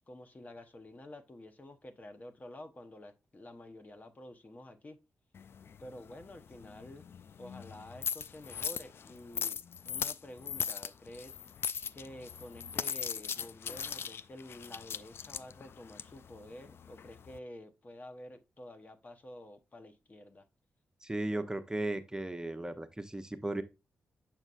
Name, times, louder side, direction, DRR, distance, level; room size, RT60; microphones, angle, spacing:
voice 1, 0.1-5.0 5.8-7.1 7.4-11.4 11.9-20.5, left 1 dB, 35° left, 1.0 m, -50 dB
sound 1, 5.3-17.4, left 7 dB, 60° left, 0.3 m, -40 dB
voice 2, 21.0-23.6, right 1 dB, 15° right, 0.8 m, -36 dB
7.2 x 5.3 x 2.5 m
supercardioid pair, 45°, 5 cm